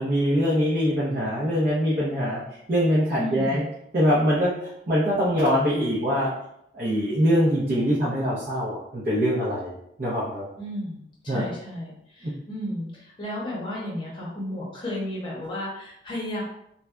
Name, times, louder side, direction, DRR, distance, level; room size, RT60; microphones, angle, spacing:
voice 1, 0.0-2.4 2.7-3.6 3.9-4.5 4.9-6.3 6.7-9.7 10.0-10.5 11.3-11.5, equal, 50° right, -7 dB, 0.6 m, -23 dB
voice 2, 3.2-3.6 10.6-11.0 11.2-16.4, left 1 dB, 30° left, -5 dB, 0.8 m, -33 dB
2.6 x 2.1 x 2.2 m, 0.75 s
head